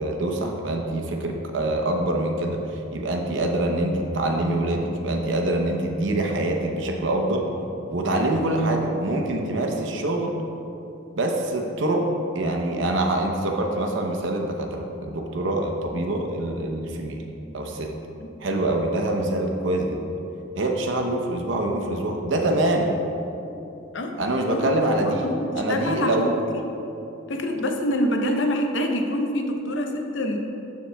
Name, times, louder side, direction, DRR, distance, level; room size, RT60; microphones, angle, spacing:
voice 1, 0.0-7.5 7.9-10.4 11.2-12.1 12.3-17.2 17.5-17.9 18.4-20.0 20.6-22.9 24.2-25.3 25.5-26.3, right 1 dB, 70° right, 2 dB, 0.8 m, -25 dB
voice 2, 25.1-26.6 27.3-30.4, left 1 dB, 70° left, 4 dB, 0.7 m, -26 dB
13.0 x 4.9 x 2.3 m, 2.9 s
head